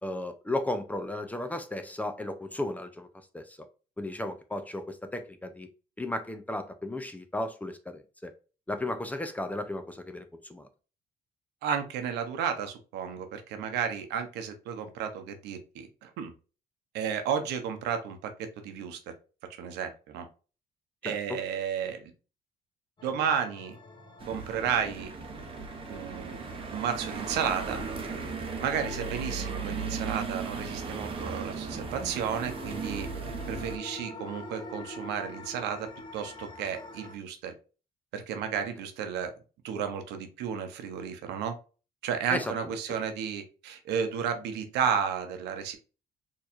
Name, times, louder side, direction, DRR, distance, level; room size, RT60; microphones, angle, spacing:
voice 1, 0.0-3.1 3.3-3.6 4.0-5.7 6.0-8.3 8.7-10.7 21.0-21.2 42.3-42.5, left 1 dB, 10° left, 8 dB, 0.5 m, -34 dB
voice 2, 11.6-16.3 16.9-19.0 19.6-20.3 21.0-22.1 23.0-23.8 24.2-25.1 25.9-26.4 26.7-27.8 28.6-37.5 38.1-39.3 39.6-41.5 42.0-45.8, right 7 dB, 85° right, 7 dB, 0.8 m, -32 dB
sound 1, 23.0-37.1, left 2 dB, 25° left, 1.1 m, -46 dB
sound 2, 24.2-33.8, right 4 dB, 30° right, 0.9 m, -36 dB
4.3 x 3.0 x 2.5 m, 0.34 s
cardioid pair, 110°, 17 cm